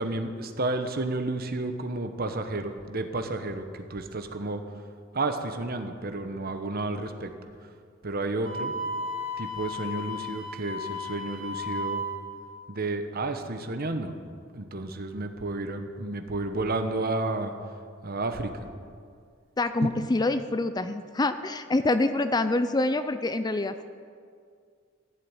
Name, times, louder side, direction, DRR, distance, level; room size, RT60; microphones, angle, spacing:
voice 1, 0.0-4.6 5.1-7.3 8.0-8.7 9.4-12.0 12.7-14.2 14.5-17.7 18.0-18.5 19.8-19.9, right 2 dB, 50° right, 8 dB, 1.1 m, -31 dB
Wind instrument woodwind instrument, 8.4-12.2, left 1 dB, 65° right, 2.1 m, -34 dB
voice 2, 19.6-23.8, left 2 dB, 20° left, 11 dB, 0.4 m, -26 dB
14.5 x 7.7 x 9.4 m, 2.2 s
head